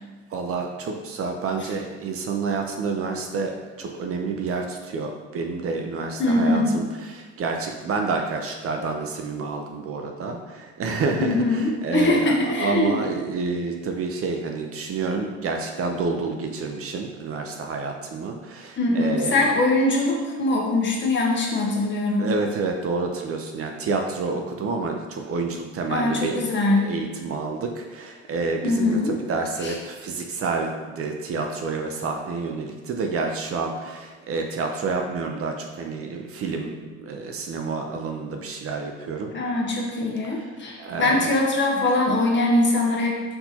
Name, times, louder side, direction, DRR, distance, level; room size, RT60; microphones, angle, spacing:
voice 1, 0.3-19.5 22.2-26.4 26.8-39.3 40.2-40.3 40.8-41.3, right 4 dB, 45° right, 3 dB, 0.6 m, -29 dB
voice 2, 6.2-6.8 11.2-13.0 18.8-22.3 25.9-26.9 28.6-29.2 29.6-29.7 39.3-43.2, left 2 dB, 35° left, -1 dB, 1.0 m, -22 dB
4.4 x 2.7 x 4.2 m, 1.4 s
cardioid pair, 105°, 33 cm